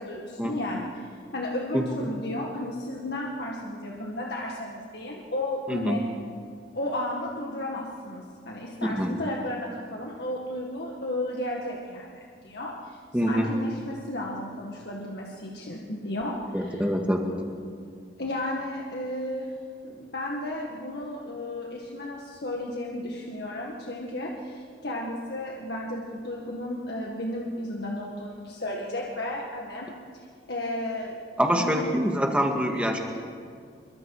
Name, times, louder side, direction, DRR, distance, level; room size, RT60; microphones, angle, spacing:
voice 1, 0.0-6.1 6.7-16.8 18.2-19.5 19.8-29.9 30.5-31.2 31.5-31.9, left 1 dB, 65° left, -1 dB, 1.9 m, -33 dB
voice 2, 1.7-2.1 5.7-6.0 8.9-9.1 13.1-13.5 16.5-17.4 31.4-33.0, equal, 5° right, 2 dB, 2.0 m, -25 dB
27.5 x 23.0 x 4.9 m, 2.2 s
head